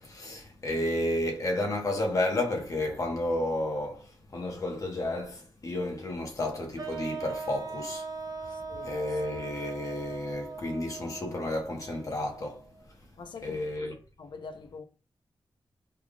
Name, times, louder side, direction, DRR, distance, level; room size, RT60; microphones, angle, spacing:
voice 1, 0.0-8.1 8.4-8.5 8.8-12.6 13.4-13.9, left 1 dB, 40° left, 1.0 m, -32 dB
sound 1, 6.8-12.8, right 4 dB, 45° right, 0.6 m, -40 dB
voice 2, 8.5-9.0 13.2-13.6 14.2-14.8, left 5 dB, 65° left, 0.5 m, -44 dB
3.4 x 2.3 x 3.7 m
wide cardioid pair, 160°, 9 cm